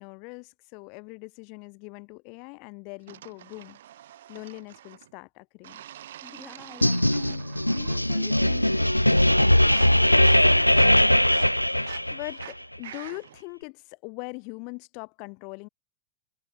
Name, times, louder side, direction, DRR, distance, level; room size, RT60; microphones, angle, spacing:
voice 1, 0.0-3.8 4.3-5.8 10.1-10.9 12.1-15.7, left 35 dB, 45° left, 7.7 m, -41 dB
sound 1, 3.1-5.1 5.6-8.1 8.4-8.8 9.1-13.4, right 12 dB, 60° right, 3.1 m, -46 dB
voice 2, 6.2-8.9, left 2 dB, 5° left, 3.2 m, -47 dB
sound 2, 6.8-12.4, left 1 dB, 90° left, 0.4 m, -20 dB
figure-of-eight pair, 90°, 0 cm